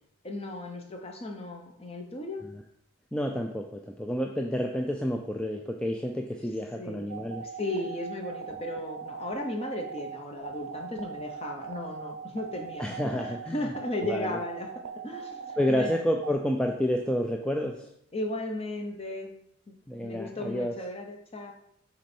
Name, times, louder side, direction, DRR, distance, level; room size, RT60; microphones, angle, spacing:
voice 1, 0.2-2.5 6.8-7.2 7.4-16.0 18.1-19.4 19.7-21.5, left 1 dB, 30° left, 3 dB, 0.8 m, -36 dB
voice 2, 3.1-7.4 12.8-13.5 14.0-14.3 15.6-17.8 19.9-20.7, equal, 5° left, 2 dB, 0.3 m, -29 dB
sound 1, 7.1-16.3, right 5 dB, 80° right, 0.6 m, -40 dB
6.2 x 4.3 x 4.4 m, 0.73 s
head